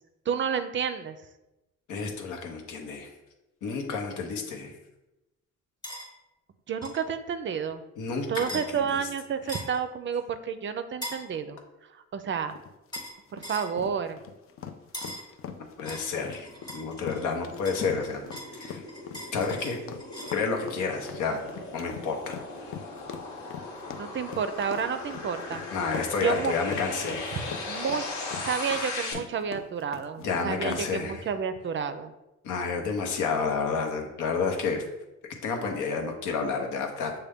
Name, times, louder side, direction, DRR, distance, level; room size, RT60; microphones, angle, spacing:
voice 1, 0.3-1.2 6.7-7.8 8.3-11.6 12.1-12.5 13.3-14.2 23.9-25.6 26.2-26.5 27.7-32.1, right 7 dB, 40° right, 10 dB, 0.4 m, -30 dB
voice 2, 1.9-3.1 3.6-4.7 8.0-9.0 9.5-9.6 15.8-18.2 18.5-18.8 19.3-19.8 20.3-21.4 21.7-22.7 25.7-27.4 30.2-31.2 32.4-34.8 35.4-37.1, left 5 dB, 90° left, 3 dB, 0.8 m, -30 dB
sound 1, 5.8-6.1 6.8-7.0 8.3-8.7 9.5-9.8 11.0-11.3 12.9-13.2 13.4-13.7 14.9-15.3 15.9-17.3 17.7-20.4, equal, 15° left, 1.0 m, -40 dB
sound 2, 12.5-30.9, left 7 dB, 45° left, 0.4 m, -41 dB
sound 3, 16.3-29.1, left 3 dB, 70° left, 1.1 m, -39 dB
6.4 x 2.2 x 3.5 m, 0.97 s
cardioid pair, 90°, 30 cm